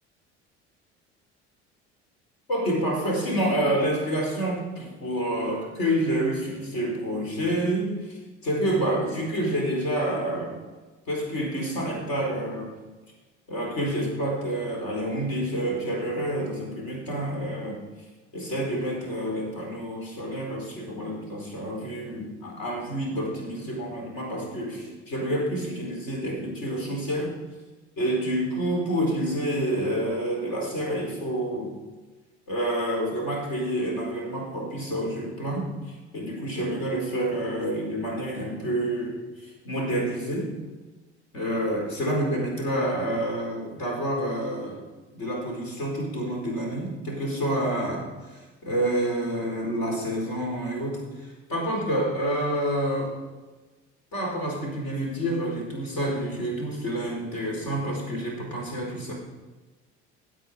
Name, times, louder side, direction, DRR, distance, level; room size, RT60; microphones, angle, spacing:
voice 1, 2.5-10.6 11.1-12.7 13.5-17.8 18.3-27.3 28.0-31.8 32.5-40.5 41.3-44.8 45.1-53.1 54.1-59.1, right 1 dB, 60° left, 0 dB, 4.4 m, -28 dB
16.5 x 7.8 x 5.0 m, 1.2 s
figure-of-eight pair, 60°, 35 cm